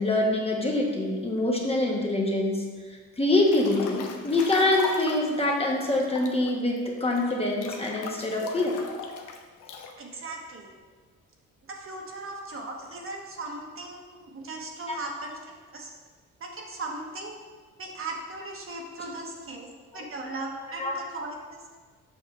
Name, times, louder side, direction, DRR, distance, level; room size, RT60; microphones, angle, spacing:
voice 1, 0.0-2.6 3.2-8.8 14.9-15.0 19.9-20.0 20.8-20.9, left 2 dB, 20° left, -1 dB, 1.2 m, -25 dB
Breathing / Bathtub (filling or washing) / Splash splatter, 3.5-5.4 5.9-9.9, left 4 dB, 85° left, 0.7 m, -38 dB
voice 2, 10.0-10.7 11.7-15.4 15.7-15.9 16.4-17.4 17.8-19.7 19.9-21.6, right 2 dB, 45° right, 0 dB, 1.1 m, -38 dB
7.2 x 5.7 x 3.1 m, 1.5 s
cardioid pair, 90°, 30 cm